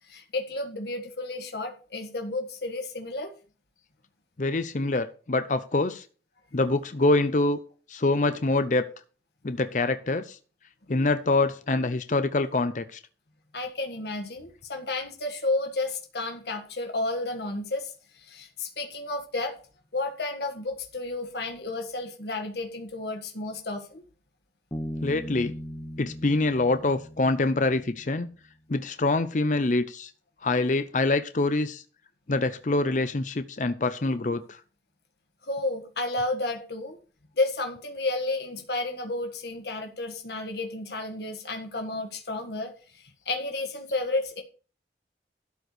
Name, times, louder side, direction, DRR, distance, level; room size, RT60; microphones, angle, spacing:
voice 1, 0.1-3.3 13.5-19.5 19.9-24.0 35.4-37.0 37.4-44.4, left 2 dB, 65° left, 4 dB, 1.6 m, -32 dB
voice 2, 4.4-6.0 6.5-7.6 7.9-8.8 9.4-10.4 10.9-13.0 25.0-25.5 26.0-28.3 28.7-30.1 30.4-31.8 32.3-34.6, left 2 dB, 45° left, 11 dB, 0.6 m, -25 dB
Bass guitar, 24.7-28.2, equal, 15° left, 1.2 m, -38 dB
12.5 x 4.5 x 6.8 m, 0.38 s
head